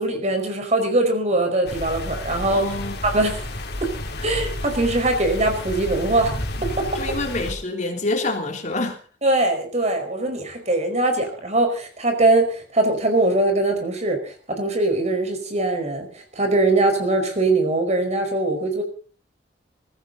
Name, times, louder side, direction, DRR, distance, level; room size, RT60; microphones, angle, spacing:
voice 1, 0.0-2.7 3.0-3.4 3.8-3.9 4.2-6.3 6.6-7.2 9.2-18.8, right 2 dB, 40° right, 5 dB, 4.9 m, -22 dB
sound 1, 1.7-7.5, left 1 dB, 60° left, 3.3 m, -31 dB
voice 2, 2.5-3.0 6.9-9.0, left 2 dB, 45° left, 4 dB, 3.2 m, -26 dB
22.0 x 15.5 x 4.0 m, 0.39 s
head